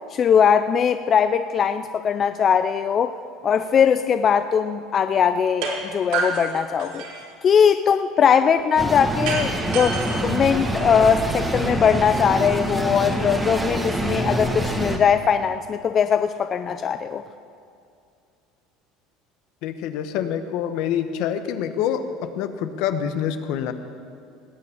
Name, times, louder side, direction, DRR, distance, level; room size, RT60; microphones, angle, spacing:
voice 1, 0.1-3.2 3.4-7.0 7.4-9.9 10.2-17.2, left 7 dB, 30° left, 9 dB, 0.4 m, -20 dB
sound 1, 5.6-5.8 6.1-7.3 9.3-11.2, right 4 dB, 70° right, 3.8 m, -29 dB
sound 2, 8.8-15.0, right 1 dB, 10° right, 1.3 m, -26 dB
voice 2, 19.6-23.7, left 9 dB, 65° left, 9 dB, 1.0 m, -26 dB
19.0 x 6.9 x 8.6 m, 2.4 s
cardioid pair, 140°, 0 cm